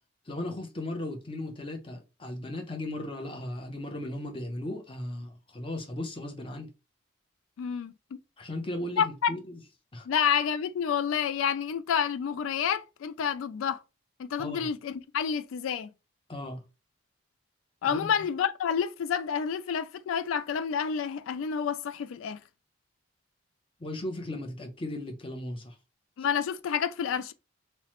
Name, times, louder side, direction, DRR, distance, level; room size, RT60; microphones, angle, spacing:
voice 1, 0.3-6.7 8.4-9.6 9.9-10.1 14.4-14.7 16.3-16.6 17.8-18.1 23.8-25.8, left 1 dB, 25° left, 0.6 m, -36 dB
voice 2, 7.6-7.9 9.0-9.3 10.1-13.8 14.2-15.9 17.8-22.4 26.2-27.3, left 7 dB, 85° left, 0.3 m, -29 dB
2.9 x 2.0 x 2.9 m
head